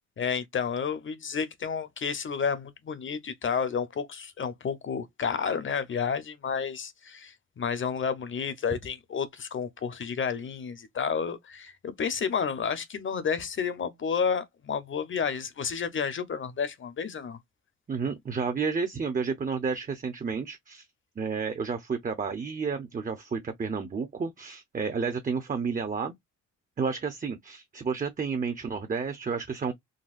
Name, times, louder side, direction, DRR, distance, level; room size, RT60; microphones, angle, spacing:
voice 1, 0.2-17.4, left 6 dB, 40° left, 0.9 m, -31 dB
voice 2, 17.9-20.9 21.2-26.1 26.8-29.7, right 5 dB, 25° right, 0.8 m, -31 dB
4.0 x 2.3 x 2.5 m
cardioid pair, 90°, 30 cm